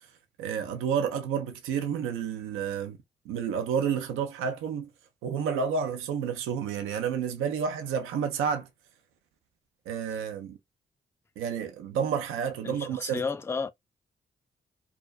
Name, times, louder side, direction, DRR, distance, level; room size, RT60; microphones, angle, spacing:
voice 1, 0.4-3.0 3.3-4.9 5.2-8.7 9.9-10.6 11.4-13.2, right 7 dB, 90° right, 0.5 m, -30 dB
voice 2, 12.6-13.7, left 5 dB, 10° left, 0.3 m, -33 dB
2.3 x 2.3 x 2.4 m
supercardioid pair, 45°, 21 cm